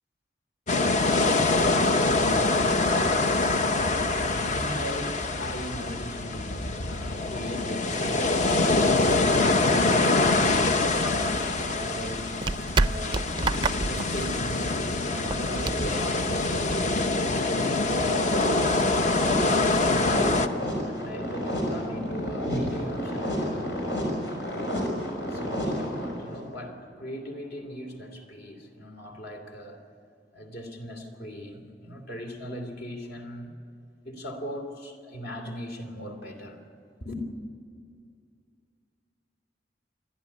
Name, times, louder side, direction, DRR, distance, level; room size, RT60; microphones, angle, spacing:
sound 1, 0.7-20.5, left 2 dB, 40° left, 0.8 m, -25 dB
voice 1, 2.3-17.2 17.5-18.7 19.3-20.4 20.8-23.7 25.3-29.8 30.3-33.5 34.0-36.6 37.0-37.2, equal, 65° left, 4 dB, 2.9 m, -38 dB
sound 2, 10.9-16.9, right 3 dB, 25° right, 0.4 m, -30 dB
sound 3, 17.8-26.4, equal, 90° left, 6.0 m, -31 dB
28.0 x 11.5 x 9.8 m, 2.3 s
head